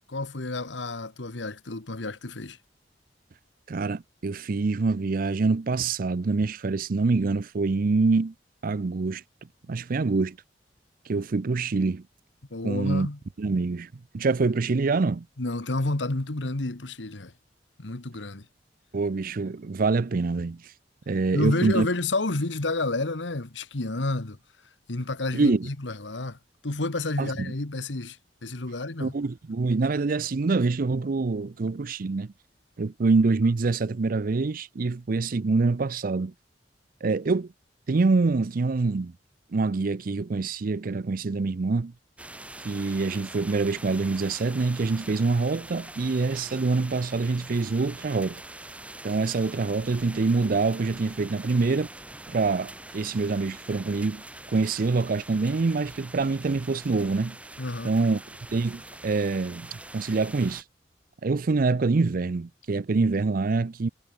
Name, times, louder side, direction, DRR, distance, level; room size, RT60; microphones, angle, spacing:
voice 1, 0.1-2.6 12.5-13.2 15.4-17.3 17.8-18.4 21.3-24.4 24.9-26.4 26.6-29.1 57.6-57.9, left 2 dB, 85° left, 1.6 m, -30 dB
voice 2, 3.7-8.3 8.6-9.2 9.7-10.4 11.1-12.0 12.6-13.1 13.4-13.9 14.1-15.3 18.9-20.6 21.1-21.9 25.3-25.7 27.2-27.5 29.0-32.3 32.8-36.3 37.0-37.5 37.9-39.1 39.5-41.9 42.6-48.4 49.0-51.9 52.3-54.2 54.5-57.4 57.8-58.2 58.5-60.6 61.2-63.9, right 3 dB, 50° right, 0.5 m, -25 dB
sound 1, 42.2-60.6, right 2 dB, 5° right, 1.1 m, -44 dB
head